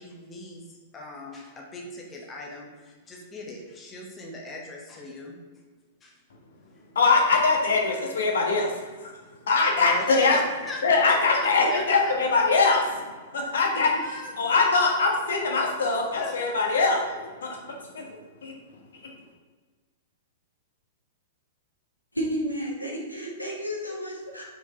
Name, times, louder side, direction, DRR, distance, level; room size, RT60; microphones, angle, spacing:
voice 1, 0.0-5.4 6.0-6.1 9.8-12.4 13.9-14.3 16.1-16.4 17.1-17.2, left 2 dB, 20° left, -1 dB, 1.2 m, -39 dB
voice 2, 6.9-8.7 9.0-9.1 9.5-10.4 10.8-13.0 13.3-13.9 14.4-17.0 17.4-17.6 17.9-18.0 18.4-18.5, left 4 dB, 65° left, 1 dB, 1.3 m, -22 dB
voice 3, 22.1-24.4, equal, 85° left, -2 dB, 1.5 m, -31 dB
5.5 x 4.7 x 4.3 m, 1.4 s
figure-of-eight pair, 100°, 0 cm